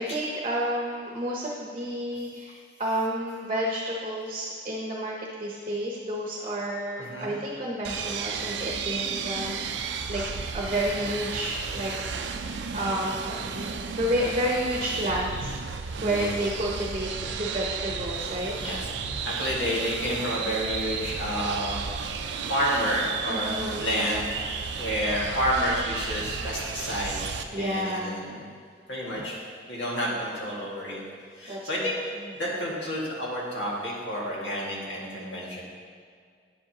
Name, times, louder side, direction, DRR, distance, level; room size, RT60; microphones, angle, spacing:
voice 1, 0.0-10.2 10.5-11.9 12.7-15.5 16.0-18.6 23.3-23.9 27.5-28.2 29.1-29.2 31.5-32.3, equal, 30° right, -3 dB, 0.8 m, -30 dB
voice 2, 7.0-7.3 16.0-16.4 18.6-18.9 19.2-21.8 22.5-23.5 23.8-24.3 24.8-28.4 28.9-29.4 29.7-31.0 31.4-32.0 32.3-35.6, equal, 90° left, -5 dB, 1.9 m, -29 dB
sound 1, 7.8-27.4, right 5 dB, 75° right, 0.4 m, -33 dB
9.7 x 7.5 x 2.9 m, 2.1 s
head